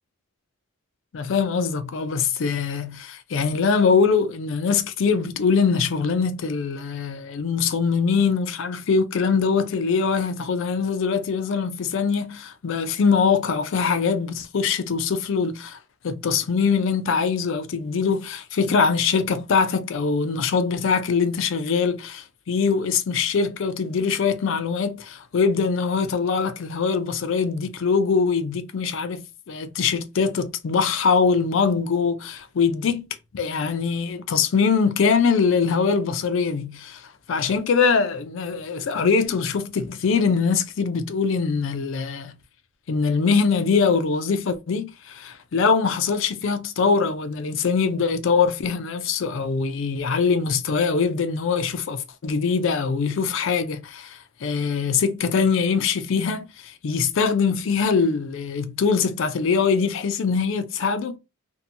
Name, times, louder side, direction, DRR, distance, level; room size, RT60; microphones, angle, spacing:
voice 1, 1.1-15.8 16.0-33.1 33.3-42.3 42.9-61.2, left 5 dB, 60° left, 0.4 m, -23 dB
2.7 x 2.1 x 2.6 m
head